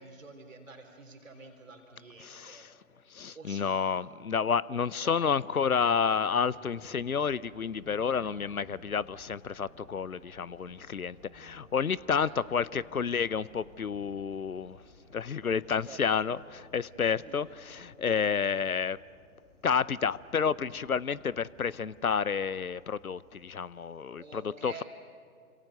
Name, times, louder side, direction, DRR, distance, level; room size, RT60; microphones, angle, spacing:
voice 1, 0.0-2.7 3.3-3.8 5.0-5.2 12.2-12.4 15.9-16.5 17.2-17.5 24.2-24.8, right 3 dB, 60° right, 3.8 m, -49 dB
voice 2, 2.2-2.7 3.1-14.8 15.1-19.0 19.6-24.8, left 6 dB, 75° left, 0.7 m, -30 dB
sound 1, 5.5-23.8, right 1 dB, 15° right, 4.8 m, -57 dB
28.5 x 26.5 x 6.7 m
figure-of-eight pair, 130°, 43 cm